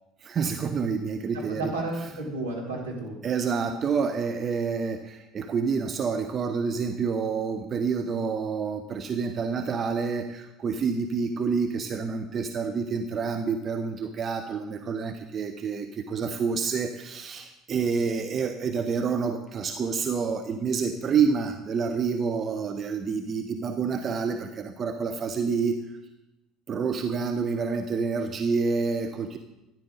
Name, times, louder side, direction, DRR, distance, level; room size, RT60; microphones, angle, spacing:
voice 1, 0.2-1.7 3.2-25.8 26.7-29.4, right 5 dB, 35° right, 7 dB, 0.9 m, -28 dB
voice 2, 1.5-3.2, right 2 dB, 85° right, -4 dB, 3.4 m, -32 dB
14.0 x 10.5 x 4.0 m, 0.94 s
figure-of-eight pair, 60°, 0 cm